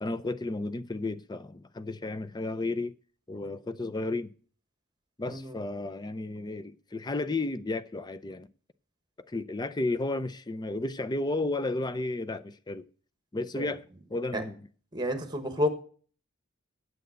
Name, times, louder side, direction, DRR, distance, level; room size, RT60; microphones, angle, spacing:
voice 1, 0.0-3.0 3.3-4.3 5.2-8.5 9.3-12.9 13.3-13.8 14.1-14.7, left 2 dB, 20° left, 0.5 m, -33 dB
voice 2, 14.9-15.7, left 1 dB, 20° right, 1.3 m, -30 dB
9.0 x 7.8 x 6.4 m
head